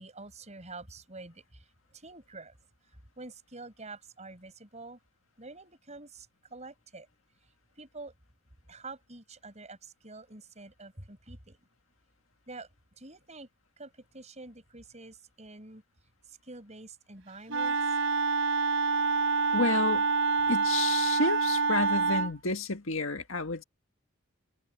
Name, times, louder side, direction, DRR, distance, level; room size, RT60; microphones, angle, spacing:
voice 1, 0.0-2.6 3.2-5.0 5.4-7.1 7.8-8.1 8.7-11.6 12.5-12.7 13.0-13.5 13.8-15.8 16.3-17.8, right 3 dB, 30° right, 6.4 m, -47 dB
Wind instrument woodwind instrument, 17.5-22.3, right 4 dB, 70° right, 3.5 m, -27 dB
voice 2, 19.5-20.1 20.5-23.6, left 3 dB, 70° left, 1.9 m, -30 dB
head